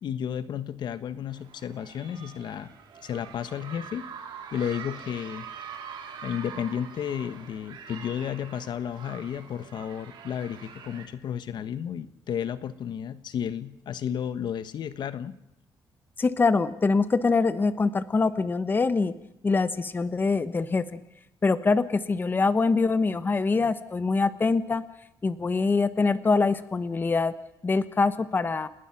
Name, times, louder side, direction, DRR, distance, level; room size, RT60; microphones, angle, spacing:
voice 1, 0.0-2.7 3.0-4.0 4.5-5.5 6.2-15.3, left 9 dB, 65° left, 13 dB, 1.2 m, -32 dB
sound 1, 1.3-11.1, right 7 dB, 75° right, 4.7 m, -44 dB
voice 2, 16.2-19.1 19.4-20.8 21.4-24.8 25.2-27.3 27.6-28.7, left 4 dB, 25° left, 13 dB, 1.1 m, -24 dB
29.0 x 19.5 x 6.0 m, 0.87 s
cardioid pair, 135°, 8 cm